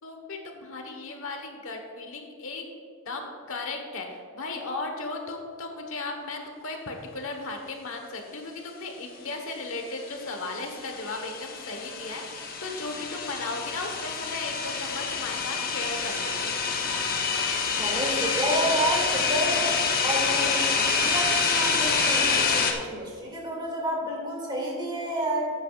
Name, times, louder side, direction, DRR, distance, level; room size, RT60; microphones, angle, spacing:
voice 1, 0.0-2.6 3.0-16.5, left 3 dB, 65° left, 3 dB, 1.2 m, -36 dB
sound 1, 10.1-22.7, left 5 dB, 45° left, 1.0 m, -27 dB
voice 2, 17.8-19.7 20.0-25.5, equal, 20° right, -2 dB, 2.4 m, -29 dB
13.5 x 9.3 x 2.5 m, 2.2 s
head